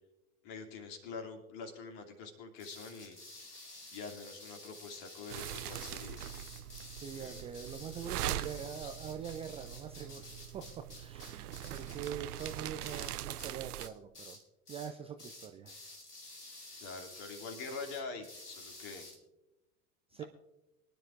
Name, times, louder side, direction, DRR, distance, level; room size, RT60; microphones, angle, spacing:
voice 1, 0.4-3.2 3.9-6.2 7.1-7.5 8.2-8.5 8.8-8.9 11.8-11.9 16.8-19.1 20.2-20.3, left 4 dB, 50° left, 4 dB, 2.7 m, -45 dB
sound 1, 2.6-13.5 13.8-14.4 14.7-14.9 15.2-19.2, left 2 dB, 85° left, 2.4 m, -51 dB
sound 2, 5.3-13.9, right 12 dB, 75° right, 0.6 m, -42 dB
voice 2, 6.8-14.4 14.7-15.7 20.1-20.2, right 8 dB, 15° right, 6 dB, 0.3 m, -44 dB
24.0 x 10.5 x 2.5 m, 0.99 s
figure-of-eight pair, 85°, 46 cm